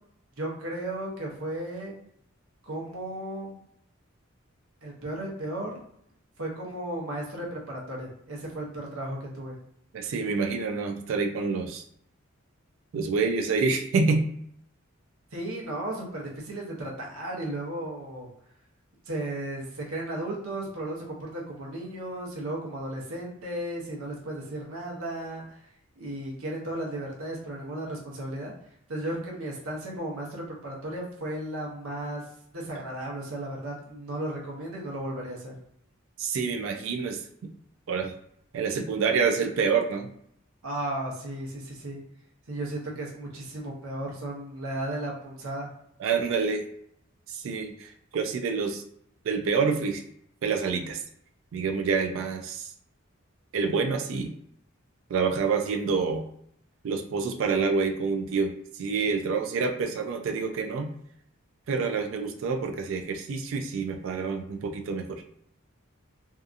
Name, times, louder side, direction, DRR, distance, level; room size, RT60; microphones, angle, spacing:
voice 1, 0.4-2.0 2.6-3.6 4.8-5.7 6.4-9.6 15.3-18.3 19.1-25.4 26.0-28.5 28.9-32.2 32.5-35.5 40.6-42.0 42.5-45.7, right 1 dB, 80° right, -2 dB, 0.9 m, -35 dB
voice 2, 9.9-11.8 12.9-14.2 32.8-32.9 36.2-37.2 37.9-38.1 38.5-40.1 46.0-46.6 47.3-48.8 49.2-50.0 50.4-51.0 51.5-52.7 53.5-54.3 55.1-56.2 56.8-60.9 61.7-65.2, right 5 dB, 65° right, 4 dB, 0.3 m, -27 dB
2.7 x 2.3 x 2.4 m, 0.70 s
head